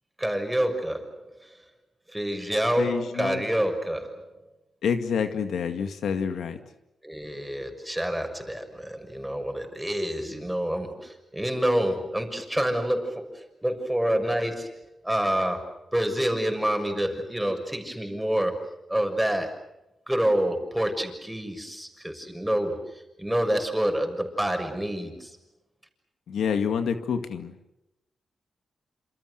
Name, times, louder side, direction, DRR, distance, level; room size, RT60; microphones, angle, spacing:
voice 1, 0.2-1.5 2.1-4.3 7.0-18.6 18.9-19.6 20.1-25.4, right 1 dB, 5° right, 5 dB, 6.5 m, -28 dB
voice 2, 2.8-3.4 4.8-6.6 26.3-27.5, left 6 dB, 90° left, 8 dB, 2.1 m, -27 dB
28.0 x 28.0 x 6.6 m, 0.90 s
cardioid pair, 80°, 0 cm